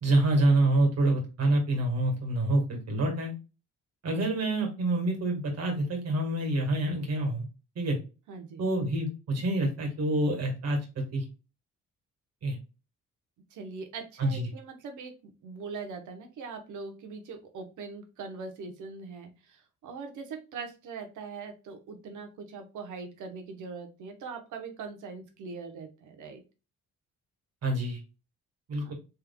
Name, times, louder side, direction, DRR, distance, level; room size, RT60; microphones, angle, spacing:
voice 1, 0.0-3.3 4.0-7.5 7.7-8.0 8.6-11.2 12.4-12.6 14.2-14.5 27.6-28.0 28.7-28.9, right 1 dB, 55° right, 2 dB, 1.8 m, -27 dB
voice 2, 8.3-8.6 13.5-26.4 28.8-28.9, right 4 dB, 80° right, 6 dB, 1.0 m, -41 dB
3.5 x 3.4 x 2.3 m, 0.30 s
cardioid pair, 90°, 30 cm